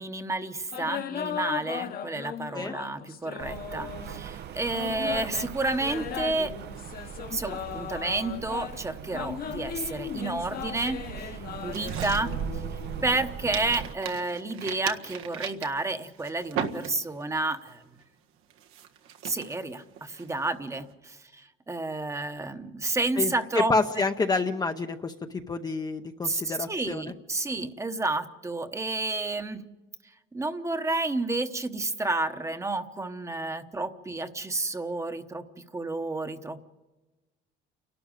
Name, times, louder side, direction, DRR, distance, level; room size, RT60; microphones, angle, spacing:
voice 1, 0.0-6.5 7.3-11.3 11.6-12.4 13.0-17.8 19.2-23.7 26.2-29.6 30.3-35.4 35.7-36.6, right 2 dB, 15° right, 9 dB, 1.0 m, -30 dB
sound 1, 0.7-4.2 4.7-13.3, left 9 dB, 45° left, 1.2 m, -37 dB
Rain, 3.4-14.0, right 8 dB, 55° right, 0.7 m, -39 dB
sound 2, 11.7-13.2 13.5-17.3 17.7-18.0 18.5-20.8, right 8 dB, 85° right, 1.7 m, -38 dB
voice 2, 23.2-25.1 25.5-27.1, left 3 dB, 20° left, 5 dB, 0.7 m, -28 dB
29.5 x 12.5 x 9.0 m, 1.2 s
cardioid pair, 160°, 21 cm